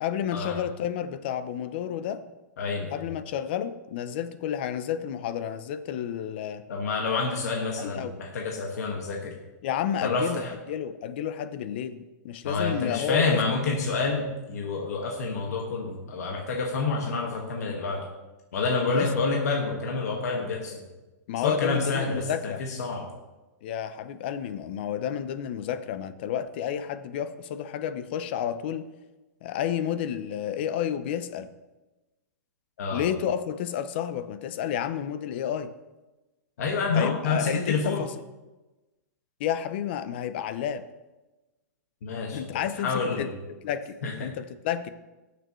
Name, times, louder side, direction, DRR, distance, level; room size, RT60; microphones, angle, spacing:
voice 1, 0.0-2.2 2.9-6.6 7.8-8.1 9.6-13.4 18.9-19.1 21.3-22.6 23.6-28.9 29.4-31.5 32.9-35.7 36.9-38.1 39.4-40.8 42.3-44.9, left 9 dB, 35° left, 12 dB, 0.5 m, -31 dB
voice 2, 2.6-3.0 6.7-9.3 10.0-10.5 12.4-18.1 18.5-20.8 21.4-23.0 32.8-33.1 36.6-38.1 42.0-42.5 42.8-43.3 44.0-44.1, left 4 dB, 60° left, 0 dB, 1.7 m, -28 dB
18.0 x 6.9 x 3.1 m, 1.1 s
hypercardioid pair, 175°, 10 cm